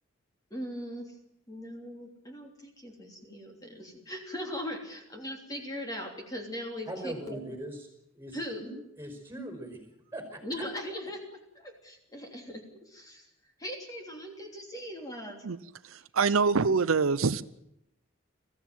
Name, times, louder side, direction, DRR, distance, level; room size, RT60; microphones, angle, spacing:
voice 1, 0.5-1.1 1.5-7.4 8.3-8.7 10.4-13.3 13.6-15.4, equal, 20° left, 2 dB, 3.2 m, -39 dB
voice 2, 6.9-7.9 8.1-9.8 10.0-10.4, right 1 dB, 10° right, 5 dB, 5.0 m, -40 dB
voice 3, 15.9-17.4, right 4 dB, 90° right, 14 dB, 0.7 m, -25 dB
21.5 x 15.0 x 9.3 m, 0.82 s
head